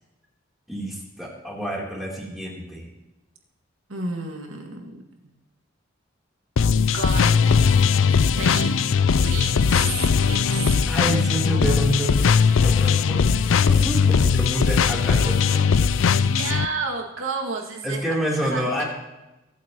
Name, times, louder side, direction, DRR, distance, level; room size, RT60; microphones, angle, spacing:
voice 1, 0.7-2.9 10.9-15.9 17.8-18.8, right 1 dB, ahead, -5 dB, 3.4 m, -28 dB
voice 2, 3.9-5.0 5.2-5.3 6.8-7.5 8.4-8.7 9.2-10.8 11.1-11.4 16.2-18.8, right 3 dB, 90° right, 1 dB, 2.2 m, -32 dB
sound 1, 6.6-16.7, left 6 dB, 70° left, 0.4 m, -19 dB
23.5 x 8.5 x 3.0 m, 1.0 s
head